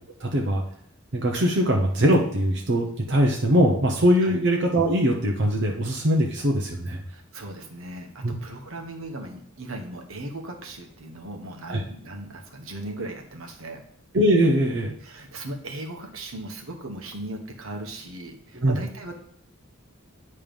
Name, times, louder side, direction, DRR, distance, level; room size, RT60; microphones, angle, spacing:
voice 1, 0.2-0.6 1.1-7.0 8.2-8.3 11.7-11.8 14.1-14.9 18.5-18.8, equal, 60° right, 0 dB, 0.9 m, -21 dB
voice 2, 7.1-13.8 15.0-19.2, right 1 dB, 75° right, 3 dB, 1.1 m, -37 dB
9.1 x 3.3 x 5.2 m, 0.64 s
head